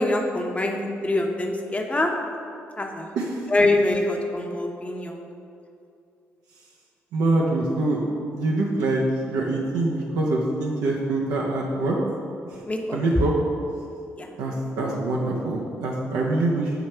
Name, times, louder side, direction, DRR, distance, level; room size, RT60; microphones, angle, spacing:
voice 1, 0.0-2.1 2.8-3.1 3.5-5.3 12.6-13.0 14.2-14.3, left 2 dB, 20° left, 2 dB, 0.8 m, -24 dB
voice 2, 7.1-8.0 8.3-12.0 12.5-12.6 12.9-13.3 14.4-16.7, right 2 dB, 80° right, -2 dB, 0.7 m, -24 dB
6.9 x 3.1 x 4.4 m, 2.6 s
hypercardioid pair, 50°, 6 cm